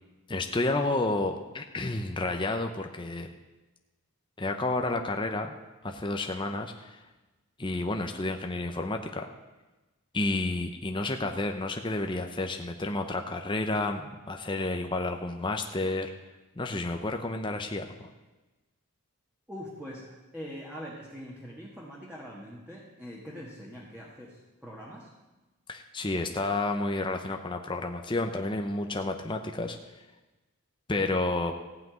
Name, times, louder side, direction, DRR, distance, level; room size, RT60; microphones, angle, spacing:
voice 1, 0.3-3.3 4.4-5.5 5.8-7.0 7.6-9.3 10.1-16.1 16.6-18.1 25.7-29.8 30.9-31.5, left 2 dB, 20° left, 5 dB, 0.7 m, -30 dB
voice 2, 19.5-25.1 31.0-31.1, equal, 5° right, -4 dB, 1.6 m, -43 dB
15.5 x 5.9 x 9.1 m, 1.1 s
head